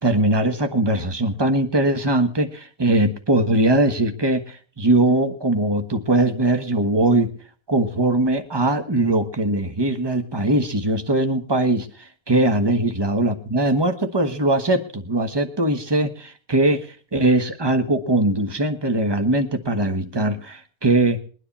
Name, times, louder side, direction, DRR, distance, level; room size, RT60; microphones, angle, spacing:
voice 1, 0.0-7.3 7.7-11.9 12.3-21.2, right 2 dB, 20° right, 8 dB, 1.2 m, -21 dB
21.5 x 9.9 x 4.2 m, 0.41 s
omnidirectional pair, 1.6 m